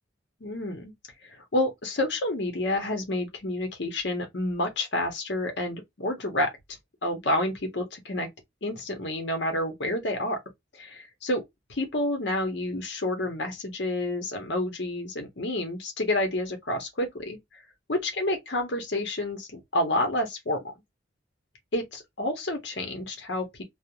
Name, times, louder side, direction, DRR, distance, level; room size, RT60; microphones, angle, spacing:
voice 1, 0.4-0.9 1.2-6.5 7.0-8.3 8.6-10.4 10.8-11.4 11.7-17.4 17.9-20.6 21.7-23.6, left 1 dB, 60° left, 0.8 m, -29 dB
2.4 x 2.1 x 2.8 m
head